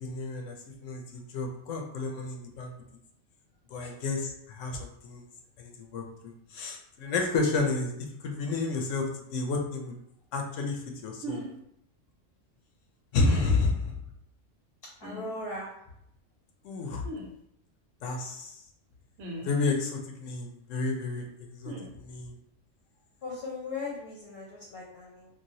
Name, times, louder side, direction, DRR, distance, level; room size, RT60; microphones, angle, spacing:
voice 1, 0.0-2.7 3.7-5.2 5.6-7.9 8.2-10.0 10.3-11.4 13.1-13.9 16.6-17.0 18.0-18.6 19.4-22.4, left 3 dB, 85° left, 2 dB, 1.0 m, -31 dB
sound 1, 11.2-11.5 13.2-13.6 15.0-15.3 17.0-17.3 19.2-19.5 21.6-21.9, right 1 dB, 80° right, 1.0 m, -38 dB
voice 2, 15.0-15.7 23.2-25.3, left 3 dB, 55° left, -4 dB, 0.9 m, -38 dB
3.2 x 2.4 x 2.7 m, 0.75 s
omnidirectional pair, 1.3 m